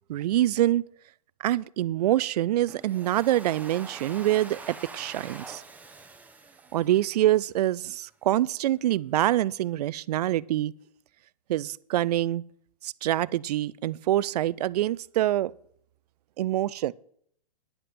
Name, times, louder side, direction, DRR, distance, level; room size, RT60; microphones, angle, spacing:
voice 1, 0.1-0.8 1.4-5.6 6.7-10.7 11.5-12.4 12.8-15.5 16.4-16.9, right 13 dB, 70° right, 0.4 m, -25 dB
Domestic sounds home sounds, 2.7-7.6, right 3 dB, 5° right, 1.1 m, -45 dB
11.0 x 10.0 x 4.3 m
hypercardioid pair, 125°, 21 cm